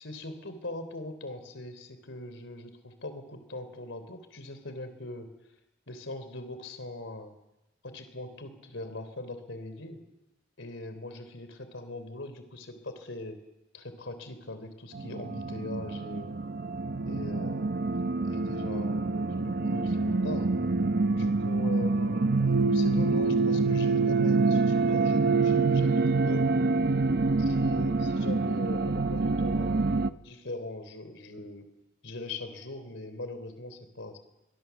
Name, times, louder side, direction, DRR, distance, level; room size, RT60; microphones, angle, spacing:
voice 1, 0.0-5.3 5.9-7.3 7.8-10.0 10.6-13.4 13.7-16.4 17.1-20.5 21.1-26.5 27.4-31.6 32.0-34.2, left 2 dB, 75° left, 10 dB, 3.6 m, -41 dB
sound 1, 14.9-30.1, right 3 dB, 55° right, 0.7 m, -26 dB
23.5 x 23.0 x 7.2 m, 0.97 s
head